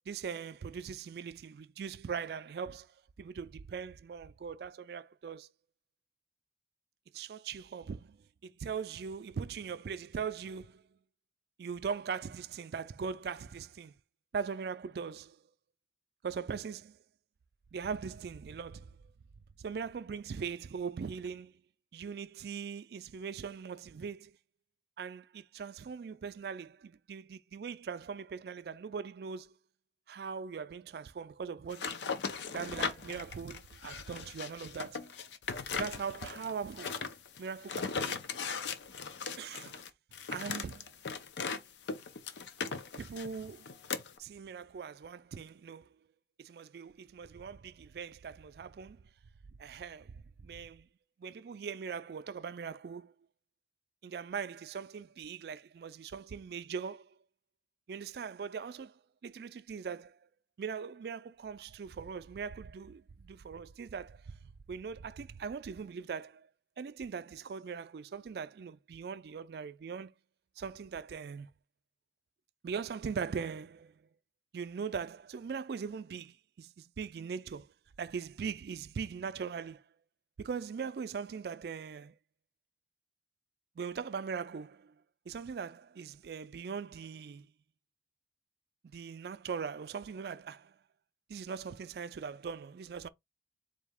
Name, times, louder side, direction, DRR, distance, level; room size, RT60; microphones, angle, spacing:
voice 1, 0.1-5.5 7.1-10.8 11.6-13.9 14.3-15.4 16.2-17.0 17.7-19.0 19.6-21.5 21.9-24.4 25.0-29.6 30.1-31.9 32.5-35.1 35.7-37.0 37.4-38.2 39.4-39.8 40.3-40.9 43.0-43.8 44.2-45.9 46.4-49.0 49.6-50.9 51.2-53.1 54.0-57.2 57.9-60.2 60.6-66.5 66.8-70.1 70.6-71.5 72.6-73.9 74.5-77.7 78.0-79.8 80.4-82.2 83.8-84.9 85.3-87.5 88.8-90.8 91.3-93.1, right 6 dB, 60° right, 0.3 m, -40 dB
sound 1, 31.7-41.6 41.9-44.2, left 5 dB, 80° left, 0.6 m, -38 dB
4.1 x 2.7 x 3.5 m
head